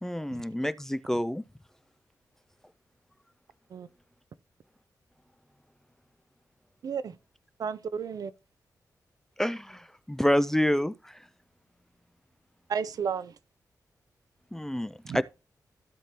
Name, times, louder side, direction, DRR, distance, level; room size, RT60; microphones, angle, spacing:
voice 1, 0.0-1.4 9.4-11.2 14.5-15.2, equal, 5° left, 0.3 m, -28 dB
voice 2, 6.8-7.1 7.6-8.3 12.7-13.3 15.0-15.2, right 6 dB, 65° right, 0.6 m, -32 dB
15.0 x 5.1 x 2.9 m
wide cardioid pair, 125°, 7 cm